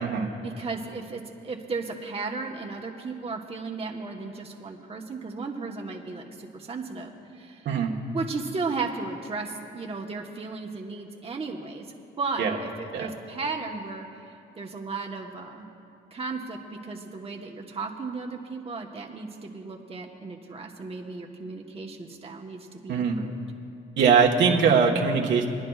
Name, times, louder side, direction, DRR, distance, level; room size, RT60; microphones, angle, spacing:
voice 1, 0.4-7.7 8.1-11.9 12.2-15.7 16.1-23.4, right 4 dB, 30° right, 0 dB, 1.1 m, -35 dB
voice 2, 24.0-25.5, right 6 dB, 70° right, -1 dB, 1.3 m, -21 dB
23.5 x 10.5 x 2.4 m, 2.6 s
cardioid pair, 90°, 20 cm